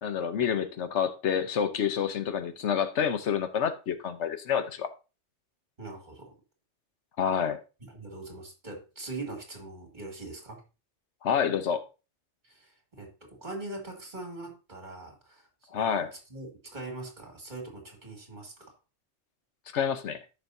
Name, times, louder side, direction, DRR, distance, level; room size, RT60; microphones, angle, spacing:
voice 1, 0.0-4.9 7.2-7.6 11.2-11.8 15.7-16.1 19.7-20.2, left 8 dB, 80° left, 1.2 m, -28 dB
voice 2, 5.8-6.4 7.8-10.6 12.4-18.7, right 2 dB, 45° right, 2.4 m, -42 dB
13.5 x 5.6 x 2.7 m
omnidirectional pair, 1.2 m